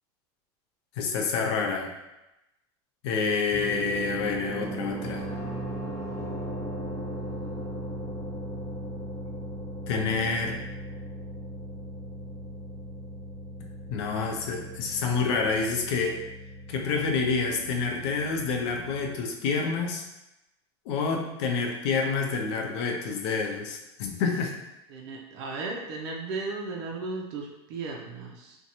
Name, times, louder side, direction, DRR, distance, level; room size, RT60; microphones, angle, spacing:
voice 1, 1.0-1.9 3.0-5.3 9.9-10.6 13.9-16.2 16.7-20.0 20.9-24.5, left 4 dB, 70° left, 2 dB, 0.5 m, -28 dB
sound 1, 3.5-19.2, right 1 dB, 20° left, 1.0 m, -37 dB
voice 2, 24.9-28.6, right 3 dB, 70° right, 0 dB, 0.4 m, -35 dB
2.6 x 2.2 x 2.8 m, 0.94 s
supercardioid pair, 120°, 14 cm